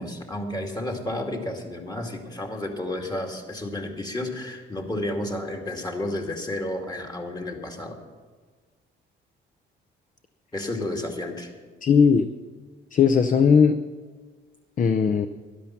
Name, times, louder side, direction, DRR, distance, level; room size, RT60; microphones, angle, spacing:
voice 1, 0.0-8.0 10.5-11.5, left 1 dB, 20° left, 2 dB, 2.3 m, -31 dB
voice 2, 11.8-12.3 12.9-13.8 14.8-15.3, left 6 dB, 40° left, 10 dB, 0.6 m, -18 dB
13.0 x 11.0 x 5.9 m, 1.4 s
cardioid pair, 90°, 20 cm